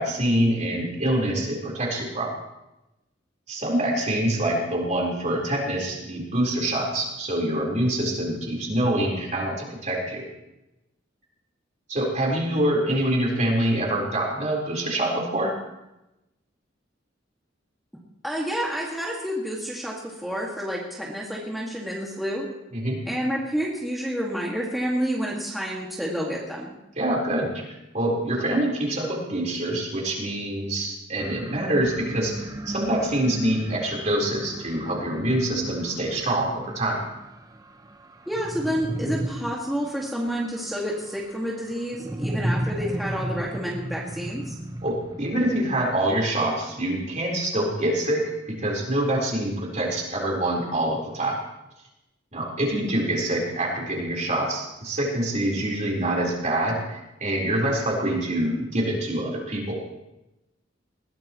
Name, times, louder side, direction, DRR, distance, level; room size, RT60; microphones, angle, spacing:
voice 1, 0.0-2.3 3.5-10.2 11.9-15.5 22.7-23.0 27.0-27.6 27.9-37.0 44.8-51.4 52.3-59.8, right 1 dB, 40° right, -2 dB, 4.3 m, -25 dB
voice 2, 18.2-22.5 23.1-26.8 38.3-44.5, equal, ahead, -5 dB, 2.0 m, -29 dB
Space Monster, 31.2-46.7, right 1 dB, 20° right, 0.9 m, -35 dB
20.5 x 16.5 x 3.1 m, 0.96 s
head